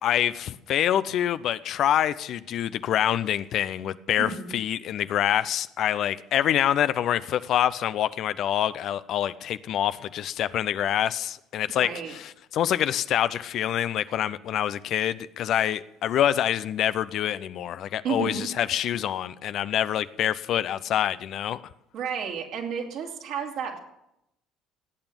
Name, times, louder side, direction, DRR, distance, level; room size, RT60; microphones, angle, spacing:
voice 1, 0.0-21.6, left 11 dB, 55° left, 0.6 m, -26 dB
voice 2, 4.2-4.5 11.8-12.2 18.0-18.5 21.9-23.8, right 6 dB, 60° right, 2.9 m, -31 dB
17.5 x 8.8 x 6.9 m
hypercardioid pair, 60°, 0 cm